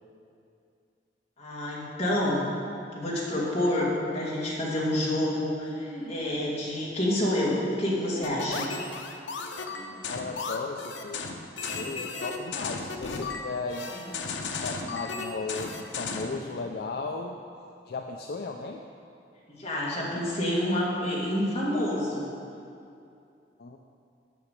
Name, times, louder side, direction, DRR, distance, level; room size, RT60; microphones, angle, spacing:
voice 1, 1.4-2.5 2.9-8.7 19.5-22.3, left 1 dB, 35° left, -6 dB, 2.0 m, -28 dB
sound 1, 5.9-6.2 7.9-8.2 9.7-10.0 11.7-12.0 13.9-14.2 16.3-16.5, equal, ahead, 2.4 m, -43 dB
sound 2, 8.2-16.4, left 4 dB, 90° left, 0.7 m, -35 dB
voice 2, 10.1-11.3 11.7-13.9 14.4-17.4 17.9-18.8 20.2-20.3 23.6-23.8, left 3 dB, 60° left, 3 dB, 0.4 m, -35 dB
8.3 x 6.1 x 6.7 m, 2.6 s
head